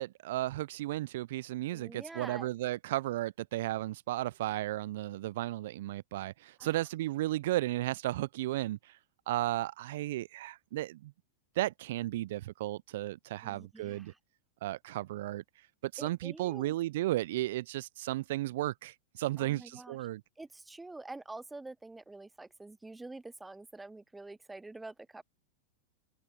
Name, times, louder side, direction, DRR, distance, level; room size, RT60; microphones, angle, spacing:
voice 1, 0.0-8.8 9.3-11.1 11.6-14.1 14.6-15.4 15.8-20.2, right 16 dB, 65° right, 0.4 m, -34 dB
voice 2, 1.7-2.5 6.6-6.7 13.4-14.2 16.0-16.7 19.4-20.0 20.4-25.2, right 2 dB, 10° right, 0.5 m, -47 dB
hypercardioid pair, 100°, 0 cm